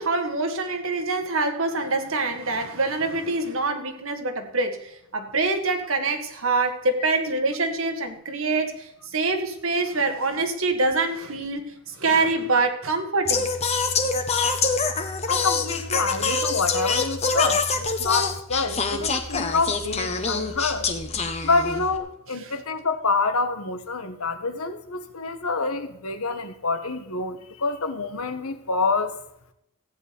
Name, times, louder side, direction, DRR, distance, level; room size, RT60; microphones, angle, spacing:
voice 1, 0.0-13.5 22.4-22.5, right 3 dB, 70° right, 6 dB, 1.8 m, -25 dB
Singing, 13.3-22.0, left 4 dB, 30° left, 1.2 m, -25 dB
voice 2, 15.3-20.9 21.4-29.1, left 3 dB, 85° left, 8 dB, 1.4 m, -27 dB
15.0 x 9.6 x 5.2 m, 0.77 s
head